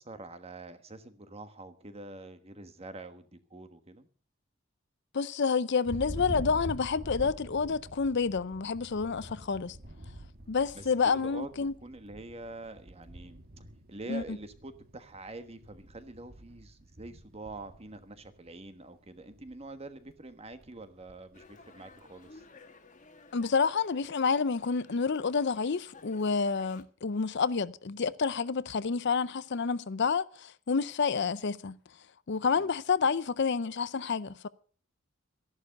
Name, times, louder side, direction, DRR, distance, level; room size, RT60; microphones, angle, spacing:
voice 1, 0.0-4.1 10.7-22.4 31.2-31.3 32.5-32.7, right 2 dB, 30° right, 1.4 m, -46 dB
voice 2, 5.1-9.8 10.5-11.7 14.1-14.4 23.3-31.8 32.3-34.5, left 5 dB, 60° left, 0.6 m, -29 dB
Thunder, 5.9-18.7 19.1-19.6 20.0-21.5, right 1 dB, 50° right, 1.4 m, -45 dB
Dog, 21.3-26.8, left 3 dB, 40° left, 1.5 m, -55 dB
14.0 x 11.0 x 6.6 m
head